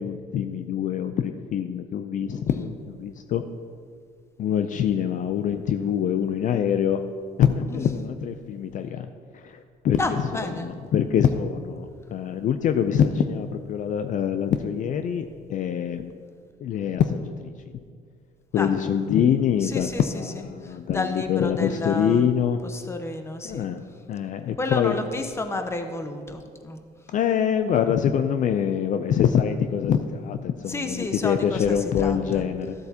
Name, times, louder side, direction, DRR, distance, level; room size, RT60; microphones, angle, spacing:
voice 1, 0.0-3.4 4.4-7.0 7.4-9.1 9.3-9.6 9.8-16.1 16.6-17.5 18.5-22.6 23.4-25.0 27.1-32.7, left 8 dB, 50° left, 8 dB, 0.4 m, -24 dB
voice 2, 10.0-10.7 18.6-18.7 19.6-22.3 22.6-23.7 24.6-26.8 30.7-32.5, left 2 dB, 15° left, 7 dB, 0.7 m, -31 dB
13.0 x 7.8 x 2.8 m, 2.1 s
cardioid pair, 110°, 17 cm